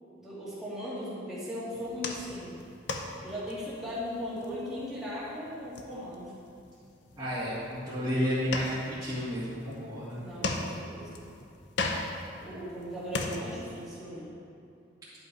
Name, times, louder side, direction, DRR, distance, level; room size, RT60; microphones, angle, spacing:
voice 1, 0.1-2.5 3.2-6.4 10.2-11.1 12.4-14.3, equal, ahead, -10 dB, 2.4 m, -38 dB
sound 1, 1.7-13.9, left 3 dB, 70° left, 0.7 m, -39 dB
voice 2, 7.2-10.2, equal, 20° right, -13 dB, 2.1 m, -31 dB
11.0 x 5.4 x 4.7 m, 2.5 s
head